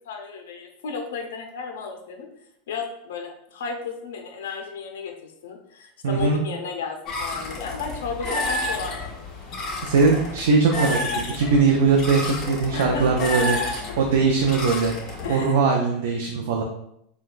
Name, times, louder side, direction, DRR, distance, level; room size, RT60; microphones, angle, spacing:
voice 1, 0.1-2.3 2.7-9.1 12.7-13.3 15.2-15.6, left 5 dB, 85° left, 3 dB, 0.5 m, -33 dB
voice 2, 6.0-6.5 9.8-14.9 15.3-16.6, right 4 dB, 75° right, 1 dB, 0.4 m, -21 dB
sound 1, 7.1-15.3, left 2 dB, 35° left, 1.0 m, -30 dB
3.7 x 2.2 x 2.5 m, 0.74 s
supercardioid pair, 130°, 0 cm